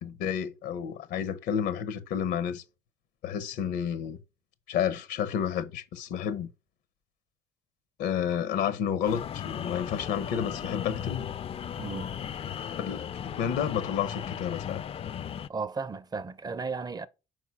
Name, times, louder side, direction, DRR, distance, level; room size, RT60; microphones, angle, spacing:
voice 1, 0.0-2.6 3.2-4.2 4.7-6.5 8.0-11.2 12.8-14.8, left 8 dB, 85° left, 0.9 m, -30 dB
sound 1, 9.0-15.5, left 9 dB, 35° left, 0.4 m, -36 dB
voice 2, 11.8-12.1 15.5-17.1, right 4 dB, 25° right, 0.5 m, -34 dB
4.8 x 4.5 x 5.7 m
cardioid pair, 110°, 17 cm